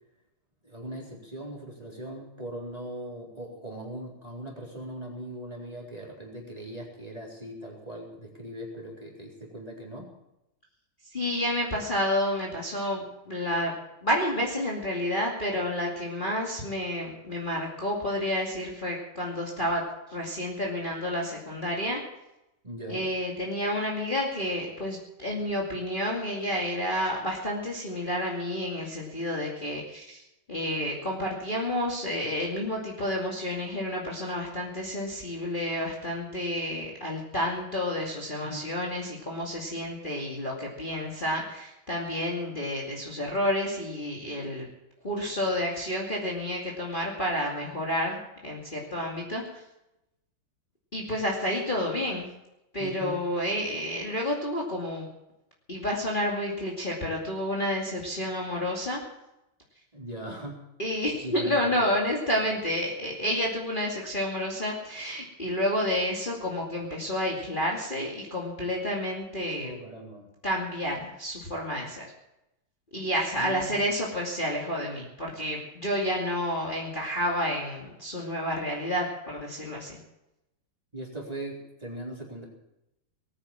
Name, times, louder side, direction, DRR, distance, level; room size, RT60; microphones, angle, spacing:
voice 1, 0.6-10.1 22.6-23.0 38.4-38.7 52.8-53.2 59.9-60.6 61.2-61.9 69.6-70.3 73.4-73.9 80.9-82.4, right 1 dB, 15° right, -2 dB, 4.0 m, -40 dB
voice 2, 11.1-13.7 14.0-19.8 20.1-22.0 22.9-30.2 30.5-44.7 45.0-49.4 50.9-52.3 52.7-55.1 55.7-59.0 60.8-69.7 70.4-72.1 72.9-80.0, left 1 dB, 25° left, -2 dB, 2.6 m, -30 dB
19.5 x 9.5 x 7.4 m, 0.88 s
omnidirectional pair, 2.3 m